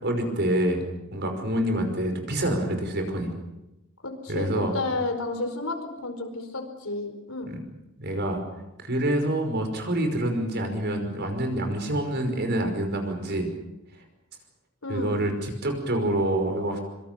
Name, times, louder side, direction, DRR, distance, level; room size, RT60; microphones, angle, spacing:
voice 1, 0.0-0.8 1.1-3.3 4.3-4.8 7.5-7.6 8.0-8.4 8.8-13.5 14.9-16.8, right 1 dB, 55° right, 5 dB, 5.5 m, -26 dB
voice 2, 4.0-7.5 14.8-15.2, left 2 dB, 75° left, 6 dB, 4.7 m, -31 dB
25.5 x 24.5 x 6.9 m, 0.95 s
head